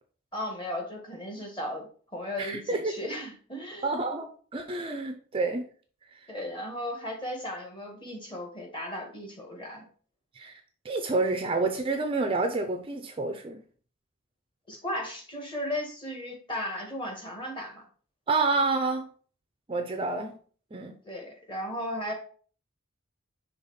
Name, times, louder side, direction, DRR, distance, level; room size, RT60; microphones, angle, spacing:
voice 1, 0.3-4.0 6.3-9.8 14.7-17.8 21.0-22.1, left 1 dB, 25° left, 1.8 m, -36 dB
voice 2, 2.4-2.9 3.8-5.6 10.4-13.6 18.3-19.1 19.7-20.4 20.7-21.0, right 3 dB, 25° right, 0.5 m, -29 dB
5.7 x 3.5 x 5.5 m
head